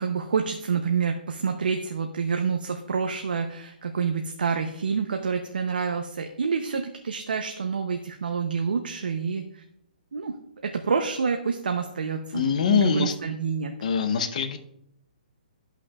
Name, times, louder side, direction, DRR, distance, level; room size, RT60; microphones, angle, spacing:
voice 1, 0.0-9.6 10.1-10.3 10.6-12.4 12.7-13.7, right 5 dB, 80° right, 4 dB, 0.7 m, -28 dB
voice 2, 12.3-13.1 13.8-14.6, left 6 dB, 50° left, 8 dB, 0.8 m, -23 dB
12.0 x 5.7 x 2.4 m, 0.76 s
hypercardioid pair, 160°, 5 cm